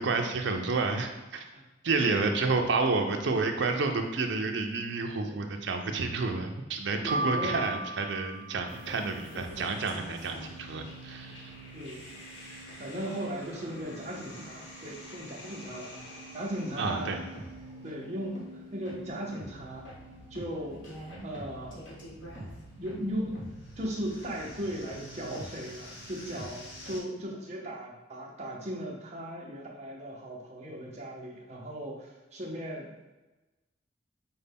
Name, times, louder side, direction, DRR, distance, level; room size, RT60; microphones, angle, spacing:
voice 1, 0.0-1.4 1.8-11.5 16.8-17.2, right 3 dB, 70° right, 4 dB, 0.5 m, -30 dB
voice 2, 2.0-2.4 5.2-5.4 7.0-7.6 11.7-12.0 12.4-16.0 16.3-17.3 17.8-18.4 18.7-19.9 20.3-20.8 21.2-21.9 22.8-23.4 23.8-32.9, equal, 35° right, -2 dB, 0.8 m, -37 dB
sound 1, 7.1-9.2, right 1 dB, 25° left, 0.8 m, -35 dB
sound 2, 8.7-27.0, right 1 dB, 85° left, 1.3 m, -45 dB
5.4 x 2.2 x 3.4 m, 1.1 s
head